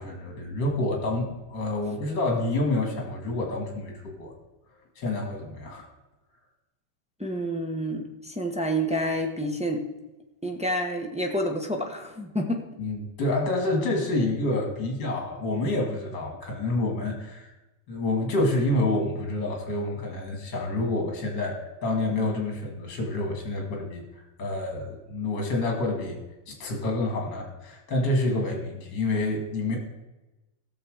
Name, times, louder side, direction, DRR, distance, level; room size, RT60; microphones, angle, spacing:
voice 1, 0.0-4.3 5.0-5.9 12.8-17.5 17.9-24.0 24.4-26.2 26.5-29.8, left 2 dB, 55° left, 3 dB, 2.8 m, -28 dB
voice 2, 7.2-9.8 10.4-12.6, equal, 5° right, 1 dB, 0.7 m, -28 dB
16.0 x 6.9 x 5.0 m, 1.0 s
omnidirectional pair, 2.4 m